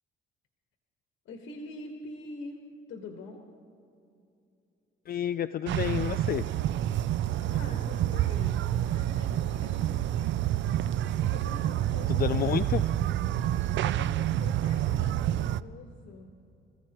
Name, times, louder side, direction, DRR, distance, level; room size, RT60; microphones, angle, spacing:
voice 1, 1.2-3.4 7.5-10.0 10.2-10.3 10.9-12.9 13.7-16.3, left 3 dB, 75° left, 2 dB, 1.5 m, -45 dB
voice 2, 5.1-6.4 12.1-12.8, left 11 dB, 50° left, 13 dB, 0.4 m, -29 dB
sound 1, 5.7-15.6, right 12 dB, 70° right, 0.4 m, -28 dB
26.5 x 15.0 x 3.0 m, 2.6 s
cardioid pair, 90°, 20 cm